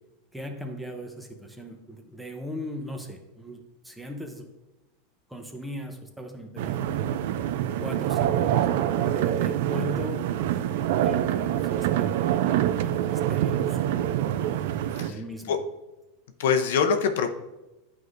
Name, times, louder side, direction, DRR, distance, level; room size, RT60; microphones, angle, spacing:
voice 1, 0.3-4.5 5.3-7.1 7.8-10.3 10.9-13.9 15.0-15.6, equal, 5° right, 3 dB, 0.8 m, -38 dB
sound 1, 6.6-15.1, right 11 dB, 70° right, 0.3 m, -25 dB
voice 2, 16.4-17.4, left 6 dB, 80° left, 6 dB, 0.7 m, -24 dB
9.1 x 4.8 x 2.6 m, 1.0 s
supercardioid pair, 140°, 0 cm